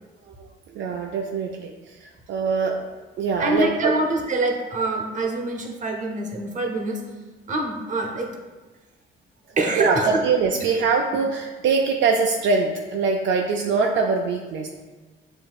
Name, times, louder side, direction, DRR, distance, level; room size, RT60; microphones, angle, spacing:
voice 1, 0.7-1.7 2.0-2.8 3.2-3.9 9.7-14.7, right 4 dB, 70° right, 0 dB, 0.4 m, -23 dB
voice 2, 3.4-7.0 7.5-8.3 9.6-10.2, right 2 dB, 40° right, 1 dB, 0.8 m, -25 dB
7.4 x 2.7 x 2.3 m, 1.3 s
cardioid pair, 90°, 20 cm